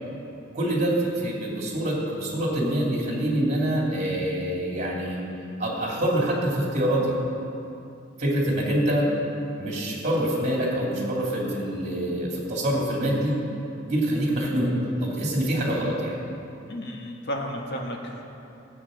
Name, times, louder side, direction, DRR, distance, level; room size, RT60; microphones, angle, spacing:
voice 1, 0.5-5.2 5.6-7.1 8.2-9.1 9.6-13.3 13.8-14.7 15.0-16.1, right 1 dB, 40° right, -3 dB, 2.7 m, -25 dB
voice 2, 16.7-18.2, equal, 60° left, 0 dB, 1.6 m, -33 dB
15.5 x 8.1 x 6.4 m, 2.8 s
head